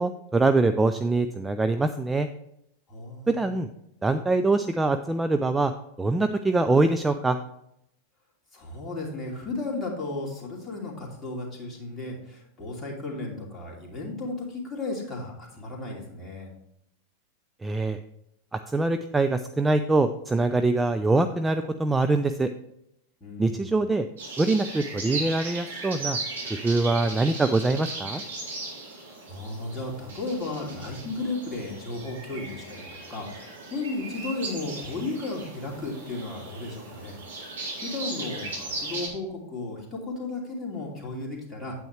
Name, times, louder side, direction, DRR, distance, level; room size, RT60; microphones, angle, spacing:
voice 1, 0.0-2.3 3.3-3.7 4.0-5.7 6.0-7.4 17.6-18.0 18.5-22.5 23.4-24.1 24.4-26.2 26.5-28.2, right 2 dB, 10° right, 9 dB, 0.4 m, -24 dB
voice 2, 2.9-3.5 8.5-16.5 23.2-23.5 28.8-37.2 37.8-41.7, left 2 dB, 15° left, -3 dB, 2.7 m, -34 dB
sound 1, 24.2-39.1, right 3 dB, 65° right, 3.6 m, -37 dB
9.0 x 8.6 x 3.2 m, 0.77 s
figure-of-eight pair, 90°, 0 cm